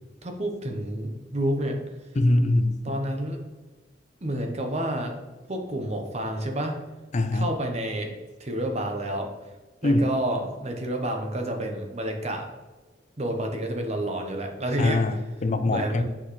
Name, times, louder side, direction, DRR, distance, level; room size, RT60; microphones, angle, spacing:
voice 1, 0.2-1.8 2.8-3.4 4.2-5.1 5.5-6.8 7.3-8.1 8.4-9.3 9.8-12.5 13.2-15.0 15.7-16.0, right 1 dB, 35° right, 3 dB, 0.9 m, -29 dB
voice 2, 2.2-2.8 7.1-7.5 9.8-10.1 14.8-16.0, left 2 dB, 40° left, 10 dB, 0.5 m, -23 dB
6.0 x 6.0 x 3.2 m, 1.2 s
head